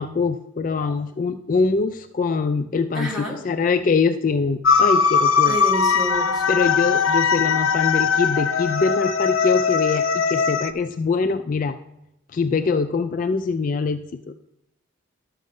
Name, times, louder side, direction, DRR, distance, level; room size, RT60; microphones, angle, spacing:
voice 1, 0.0-5.6 6.5-11.8 12.3-14.0, left 4 dB, 40° left, 9 dB, 0.3 m, -23 dB
voice 2, 2.9-3.4 5.5-6.6, equal, ahead, -3 dB, 2.1 m, -29 dB
sound 1, 4.6-10.7, left 6 dB, 85° left, 0.6 m, -20 dB
12.0 x 6.3 x 5.3 m, 0.86 s
head